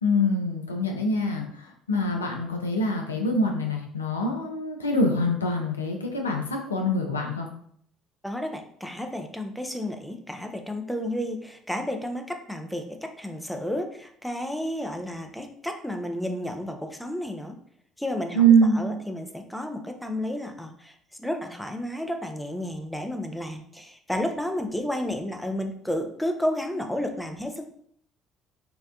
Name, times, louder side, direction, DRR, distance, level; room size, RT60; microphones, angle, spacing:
voice 1, 0.0-7.5 18.3-18.9, right 1 dB, 85° left, 1 dB, 0.3 m, -24 dB
voice 2, 8.2-17.6 18.0-18.4 18.7-27.7, left 1 dB, 5° left, 4 dB, 0.4 m, -32 dB
2.6 x 2.1 x 2.3 m, 0.65 s
figure-of-eight pair, 55°, 0 cm